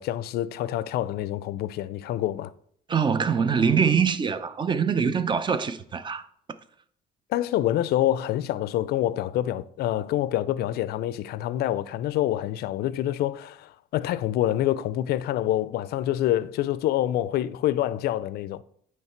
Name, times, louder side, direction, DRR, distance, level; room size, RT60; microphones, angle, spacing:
voice 1, 0.0-2.5 7.3-18.6, left 13 dB, 70° left, 0.4 m, -26 dB
voice 2, 2.9-6.3, right 6 dB, 30° right, 0.6 m, -23 dB
9.2 x 3.2 x 4.4 m
cardioid pair, 110°, 17 cm